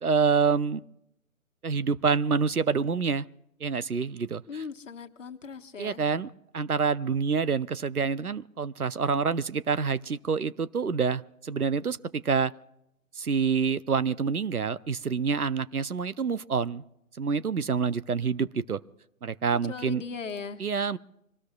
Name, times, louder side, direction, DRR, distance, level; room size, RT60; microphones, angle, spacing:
voice 1, 0.0-0.8 1.6-3.3 3.6-4.6 5.8-12.5 13.2-16.8 17.1-18.8 19.2-20.0 20.6-21.0, right 5 dB, 85° right, 16 dB, 0.8 m, -27 dB
voice 2, 4.5-6.0 19.7-20.6, left 5 dB, 60° left, 7 dB, 1.4 m, -38 dB
25.5 x 19.0 x 2.3 m, 0.79 s
figure-of-eight pair, 135°, 43 cm